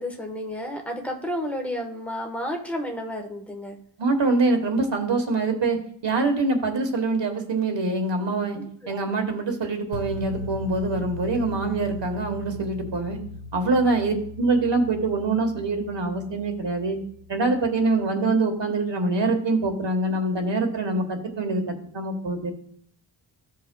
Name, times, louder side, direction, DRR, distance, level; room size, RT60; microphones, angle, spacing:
voice 1, 0.0-3.8 8.5-9.1 13.7-14.0, equal, 5° left, 1 dB, 1.1 m, -32 dB
voice 2, 4.0-8.6 8.9-13.2 13.5-17.0 17.3-22.5, right 3 dB, 65° right, 4 dB, 1.3 m, -24 dB
sound 1, 9.9-18.1, left 3 dB, 90° left, 0.9 m, -39 dB
13.5 x 5.5 x 2.2 m, 0.62 s
wide cardioid pair, 100°, 46 cm